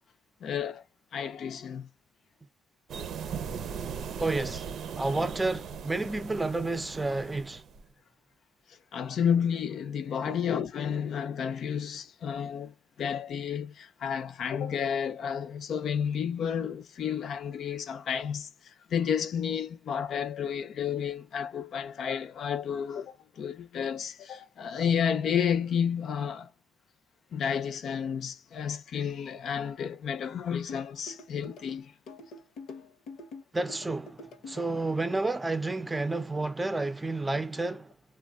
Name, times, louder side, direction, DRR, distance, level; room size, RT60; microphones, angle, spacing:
voice 1, 0.4-0.8 1.1-1.9 8.7-26.5 27.3-31.9, left 8 dB, 65° left, 0.6 m, -31 dB
sound 1, 2.9-7.8, right 7 dB, 65° right, 0.6 m, -38 dB
voice 2, 4.2-7.6 10.2-10.4 33.5-37.9, right 2 dB, 15° right, 0.6 m, -31 dB
sound 2, 30.7-34.7, left 3 dB, 85° left, 0.9 m, -45 dB
3.2 x 2.2 x 2.4 m
cardioid pair, 90°, 0 cm